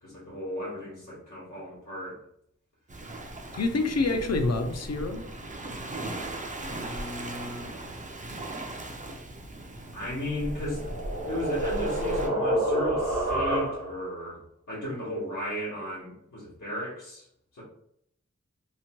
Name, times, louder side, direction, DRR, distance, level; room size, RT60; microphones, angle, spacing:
voice 1, 0.0-2.2 6.6-7.7 9.9-10.9 11.3-14.4 14.7-17.3 17.5-17.6, left 1 dB, 90° left, -9 dB, 1.1 m, -35 dB
Waves surf, 2.9-12.3, right 1 dB, 25° right, 0.4 m, -38 dB
voice 2, 3.5-5.3, left 3 dB, 60° left, 7 dB, 0.4 m, -27 dB
sound 1, 10.3-14.1, right 1 dB, 65° right, 1.1 m, -28 dB
2.9 x 2.1 x 2.9 m, 0.72 s
wide cardioid pair, 45°, 30 cm